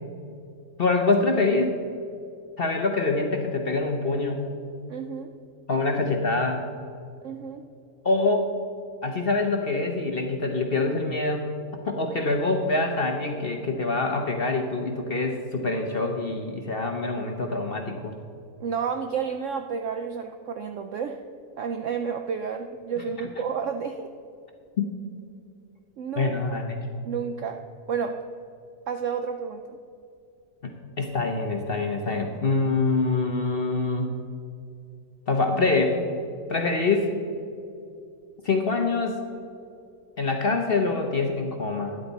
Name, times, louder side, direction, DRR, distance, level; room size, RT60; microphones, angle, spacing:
voice 1, 0.8-1.7 2.6-4.4 5.7-6.6 8.0-8.5 9.0-11.6 11.8-18.1 24.8-24.9 26.2-26.8 30.6-34.1 35.3-36.0 36.5-37.1 38.4-39.2 40.2-42.0, left 3 dB, 45° left, 3 dB, 0.8 m, -25 dB
voice 2, 4.9-5.3 7.2-7.6 18.6-21.2 21.6-24.1 26.0-26.4 27.0-27.6 27.9-28.2 28.9-29.8, right 6 dB, 70° right, 5 dB, 0.7 m, -31 dB
12.5 x 9.9 x 4.1 m, 2.5 s
omnidirectional pair, 1.8 m